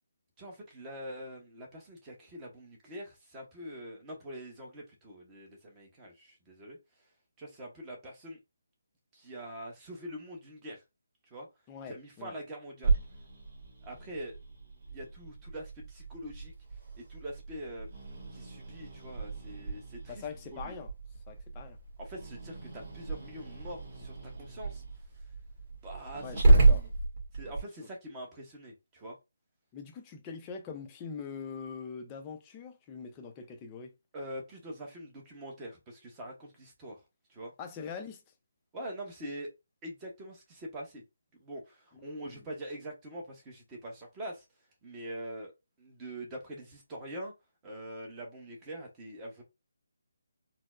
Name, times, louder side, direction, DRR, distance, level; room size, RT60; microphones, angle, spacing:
voice 1, 0.4-6.8 7.4-8.4 9.1-10.8 11.3-11.5 11.9-13.0 13.8-14.4 14.9-16.5 16.9-17.9 18.3-20.2 20.5-20.7 22.0-24.8 25.8-26.9 27.3-29.2 34.1-37.0 37.3-37.5 38.7-39.5 39.8-41.0 41.3-44.4 44.8-45.5 45.8-47.3 47.6-49.4, right 1 dB, 15° right, 0.9 m, -44 dB
voice 2, 11.7-12.3 20.1-20.9 21.3-21.8 26.2-26.8 27.4-27.5 27.8-27.9 29.7-33.9 37.6-38.2 41.9-42.5, left 6 dB, 15° left, 0.5 m, -43 dB
Growling, 12.8-27.6, right 2 dB, 35° right, 1.7 m, -31 dB
4.2 x 2.0 x 2.4 m
hypercardioid pair, 165°, 0 cm